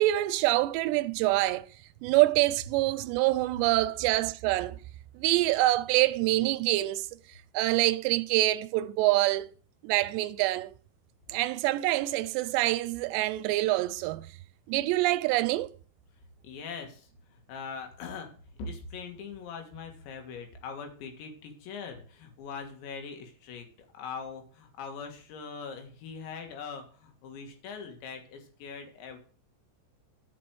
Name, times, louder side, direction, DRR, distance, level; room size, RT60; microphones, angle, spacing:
voice 1, 0.0-1.7 2.0-4.8 5.1-7.1 7.5-9.5 9.8-10.7 11.3-14.3 14.7-15.7, right 17 dB, 85° right, 2.7 m, -26 dB
voice 2, 16.4-18.3 18.6-29.2, left 5 dB, 80° left, 3.9 m, -42 dB
12.5 x 6.1 x 4.6 m
omnidirectional pair, 5.2 m